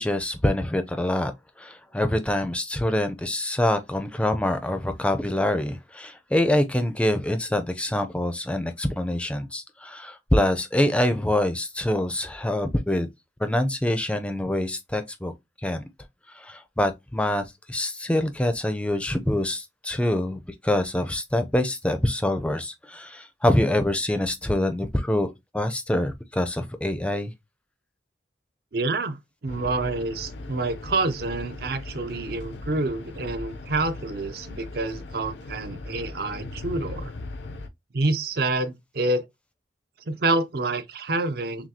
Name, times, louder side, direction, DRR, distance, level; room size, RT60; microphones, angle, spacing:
voice 1, 0.0-1.3 1.6-13.1 13.4-15.3 15.6-15.8 16.3-27.3, left 1 dB, 5° left, 0.4 m, -25 dB
voice 2, 28.7-29.2 29.4-37.1 37.9-39.3 40.1-41.7, right 2 dB, 55° right, 0.6 m, -27 dB
sound 1, 29.5-37.7, left 2 dB, 70° left, 0.5 m, -38 dB
5.9 x 2.3 x 2.7 m
head